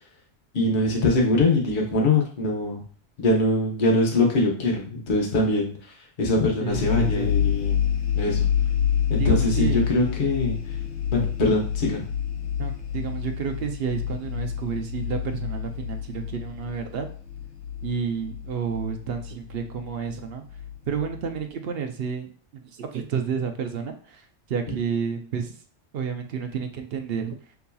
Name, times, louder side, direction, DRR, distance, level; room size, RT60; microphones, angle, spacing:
voice 1, 0.5-2.8 3.2-5.7 6.2-7.9 8.1-8.5 9.1-10.6 11.1-12.0, left 2 dB, 45° left, -1 dB, 1.1 m, -22 dB
voice 2, 6.6-7.4 9.2-9.8 12.6-17.1 17.8-20.4 20.9-22.3 22.7-25.6 25.9-27.4, right 7 dB, 60° right, 5 dB, 0.7 m, -30 dB
sound 1, 6.7-21.4, left 9 dB, 70° left, 1.0 m, -28 dB
6.8 x 2.7 x 2.3 m, 0.43 s
omnidirectional pair, 1.3 m